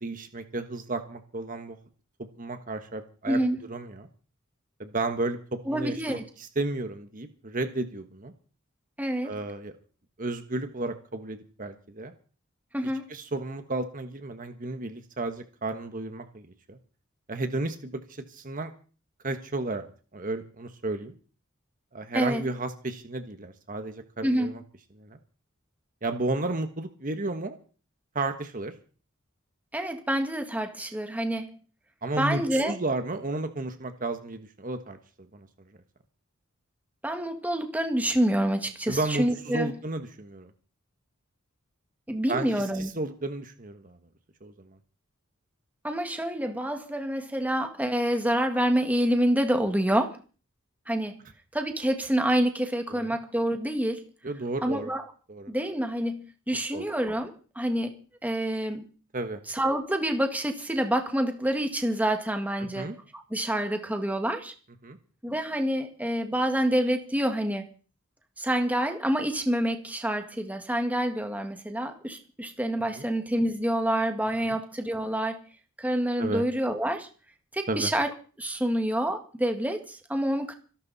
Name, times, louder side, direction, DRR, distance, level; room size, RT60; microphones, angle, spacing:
voice 1, 0.0-1.8 2.4-3.4 3.7-4.1 4.8-8.3 9.2-9.7 10.2-12.1 13.1-16.8 17.3-18.7 19.2-21.1 21.9-24.6 25.0-25.2 26.0-27.6 28.1-28.7 32.0-35.0 35.3-35.5 38.9-40.5 42.3-44.0 44.4-44.7 52.9-53.2 54.2-54.9 55.3-55.5 56.7-56.9 59.1-59.4 62.6-63.0 64.8-65.0 72.9-73.1 74.4-74.6 76.2-76.4 77.7-77.9, right 2 dB, 40° right, 8 dB, 1.5 m, -33 dB
voice 2, 3.3-3.6 5.7-6.2 9.0-9.4 12.7-13.1 22.1-22.4 24.2-24.5 29.7-31.5 32.2-32.7 37.0-39.7 42.1-42.9 45.8-50.2 50.9-51.2 51.5-54.0 54.6-55.0 55.5-58.8 59.5-64.5 65.2-67.7 68.4-75.4 75.8-77.1 77.5-78.1 78.4-80.5, right 1 dB, 10° right, 5 dB, 1.9 m, -27 dB
26.0 x 12.0 x 4.2 m, 0.39 s
head